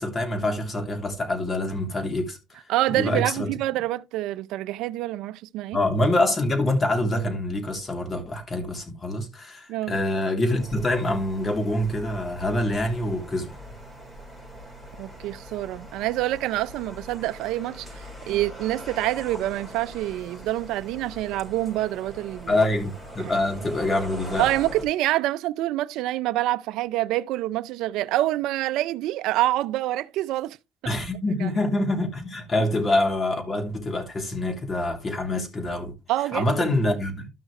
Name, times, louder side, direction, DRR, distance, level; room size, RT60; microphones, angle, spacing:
voice 1, 0.0-2.4 2.9-3.5 5.7-13.5 22.5-24.5 30.8-35.9 36.3-37.3, left 1 dB, 25° left, 3.2 m, -25 dB
voice 2, 2.7-5.8 9.7-10.0 15.0-22.6 23.2-23.3 24.4-30.6 30.8-30.9 31.4-31.5 36.1-36.6, right 15 dB, 75° right, 0.5 m, -26 dB
sound 1, 10.5-24.8, right 1 dB, 10° left, 4.5 m, -41 dB
13.0 x 6.2 x 3.2 m
supercardioid pair, 95°, 0 cm